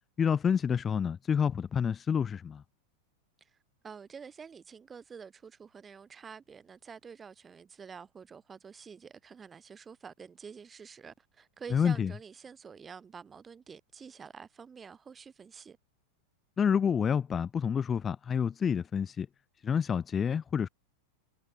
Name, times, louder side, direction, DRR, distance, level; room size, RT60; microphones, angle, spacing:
voice 1, 0.2-2.6 11.7-12.1 16.6-19.3 19.6-20.7, left 7 dB, 20° left, 0.7 m, -28 dB
voice 2, 3.8-15.8, right 6 dB, 20° right, 2.6 m, -48 dB
figure-of-eight pair, 90°, 0 cm